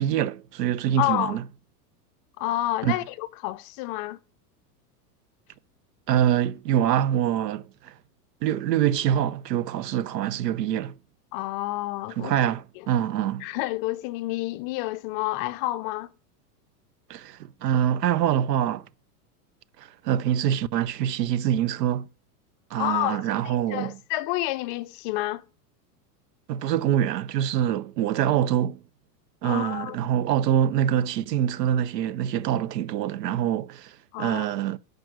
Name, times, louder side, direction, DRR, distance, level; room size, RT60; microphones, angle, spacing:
voice 1, 0.0-1.4 2.8-3.0 6.1-7.9 8.4-10.9 12.2-13.5 17.1-18.9 19.8-22.1 22.7-24.0 26.5-28.8 29.4-34.8, right 10 dB, 90° right, 0.7 m, -25 dB
voice 2, 1.0-1.4 2.4-4.2 11.3-12.3 13.4-16.1 22.8-25.4 29.4-30.0 34.1-34.5, left 17 dB, 35° left, 0.4 m, -29 dB
9.1 x 5.1 x 6.0 m
supercardioid pair, 135°, 47 cm